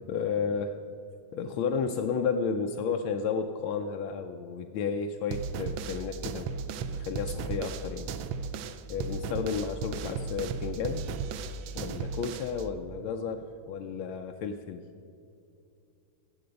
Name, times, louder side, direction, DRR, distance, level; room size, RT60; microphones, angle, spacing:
voice 1, 0.1-0.8 1.3-6.5 6.9-8.1 8.9-11.0 11.7-14.8, left 6 dB, 85° left, 4 dB, 1.4 m, -32 dB
sound 1, 5.3-12.6, right 5 dB, 80° right, 1.4 m, -35 dB
14.5 x 7.9 x 5.2 m, 2.6 s
omnidirectional pair, 2.2 m